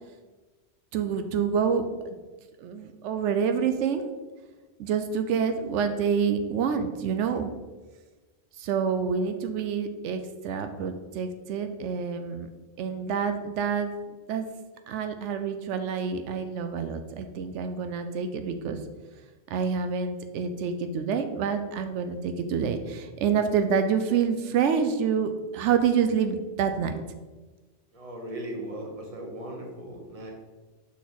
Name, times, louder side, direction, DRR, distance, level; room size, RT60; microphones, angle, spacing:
voice 1, 0.9-2.1 2.6-4.1 4.8-7.5 8.6-12.5 12.8-13.9 14.3-14.5 14.9-18.8 19.5-26.9, right 6 dB, 90° right, 7 dB, 0.9 m, -27 dB
voice 2, 27.9-30.3, right 1 dB, 30° right, 0 dB, 1.1 m, -38 dB
6.3 x 4.3 x 4.0 m, 1.2 s
omnidirectional pair, 1.2 m